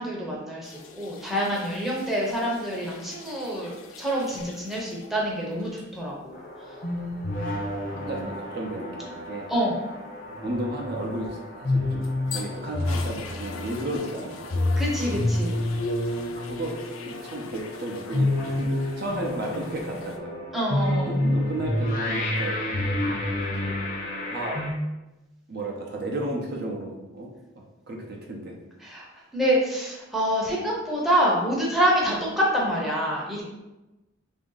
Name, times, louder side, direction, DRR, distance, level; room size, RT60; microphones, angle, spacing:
voice 1, 0.0-6.4 9.5-9.7 14.8-15.6 20.5-21.1 28.8-29.1 29.3-33.4, equal, ahead, -5 dB, 0.7 m, -26 dB
sound 1, 0.6-5.2 5.5-5.8 11.7-20.2, left 5 dB, 85° left, 0.4 m, -43 dB
sound 2, 6.3-24.7, left 1 dB, 45° left, 0.6 m, -29 dB
voice 2, 7.9-9.5 10.4-14.8 16.3-16.7 17.0-20.4 21.1-22.6 23.0-23.7 24.3-24.6 25.5-27.3 27.9-28.6, right 1 dB, 50° right, -1 dB, 0.6 m, -33 dB
3.4 x 2.7 x 3.8 m, 1.0 s
head